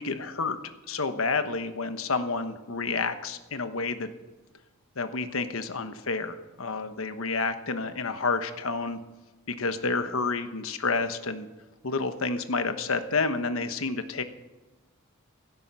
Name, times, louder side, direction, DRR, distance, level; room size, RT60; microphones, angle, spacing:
voice 1, 0.0-4.1 5.0-9.0 9.5-11.5 11.8-14.2, left 4 dB, 75° left, 9 dB, 1.2 m, -29 dB
16.5 x 12.5 x 5.6 m, 1.2 s
head